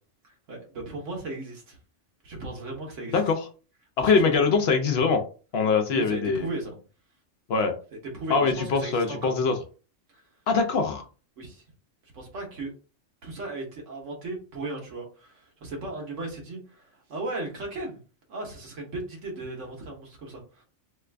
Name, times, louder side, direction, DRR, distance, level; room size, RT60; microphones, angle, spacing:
voice 1, 0.2-1.8 2.2-3.3 4.0-4.2 5.9-6.8 8.1-9.4 10.1-10.2 11.4-11.6 12.1-12.7 13.2-18.0 18.3-20.6, right 2 dB, 75° right, 0 dB, 1.4 m, -36 dB
voice 2, 4.0-5.2 5.5-6.5 7.5-7.7 8.3-9.5 10.5-11.0, left 5 dB, 60° left, 5 dB, 0.8 m, -23 dB
3.1 x 2.4 x 3.3 m, 0.36 s
omnidirectional pair, 1.3 m